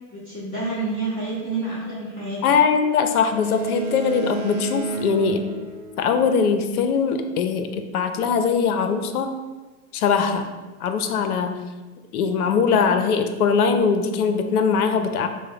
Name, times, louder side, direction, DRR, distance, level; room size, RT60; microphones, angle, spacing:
voice 1, 0.1-2.4, right 3 dB, 15° left, -10 dB, 1.4 m, -28 dB
voice 2, 2.4-5.5 6.0-9.3 9.9-10.5 10.8-11.7 12.1-15.3, left 6 dB, 70° left, 7 dB, 0.7 m, -21 dB
Boat Water vehicle, 3.4-6.6, right 3 dB, 85° right, 0.8 m, -31 dB
6.1 x 2.2 x 3.8 m, 1.3 s
hypercardioid pair, 110°, 45 cm